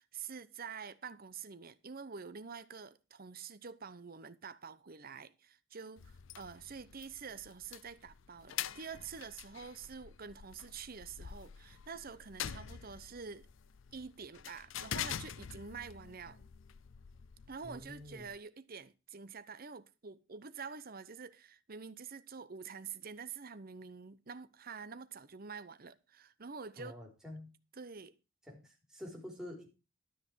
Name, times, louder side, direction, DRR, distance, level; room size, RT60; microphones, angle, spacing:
voice 1, 0.0-13.5 13.9-16.5 17.5-26.9 27.7-28.1, right 5 dB, 45° right, 0.9 m, -47 dB
sound 1, 6.0-18.4, left 9 dB, 70° left, 0.5 m, -46 dB
voice 2, 17.6-18.3 26.8-27.5 28.5-29.7, left 1 dB, 5° right, 4.0 m, -48 dB
12.5 x 6.1 x 6.3 m
head